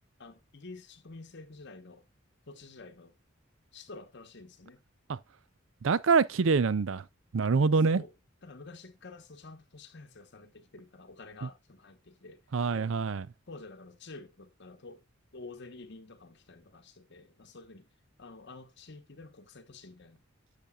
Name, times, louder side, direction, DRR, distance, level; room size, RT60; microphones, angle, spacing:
voice 1, 0.2-2.0 2.5-3.1 3.7-4.8 7.9-8.1 8.4-12.4 12.7-12.9 13.5-15.0 15.3-17.9 18.2-20.2, left 3 dB, 60° left, 1.2 m, -49 dB
voice 2, 5.8-7.0 7.3-8.0 12.5-13.3, right 4 dB, 70° right, 0.5 m, -25 dB
10.5 x 6.8 x 2.4 m
head